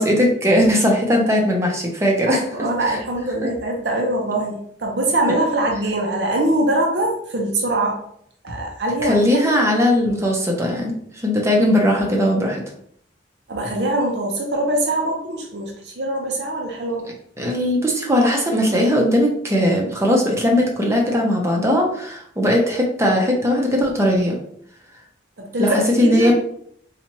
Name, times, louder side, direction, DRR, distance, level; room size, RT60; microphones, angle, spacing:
voice 1, 0.0-2.4 9.0-12.6 17.4-24.4 25.6-26.3, left 1 dB, 15° right, 0 dB, 0.7 m, -18 dB
voice 2, 2.3-8.0 8.4-9.2 13.5-17.1 25.4-26.3, right 1 dB, 65° right, 1 dB, 0.7 m, -23 dB
4.2 x 2.4 x 3.0 m, 0.66 s
head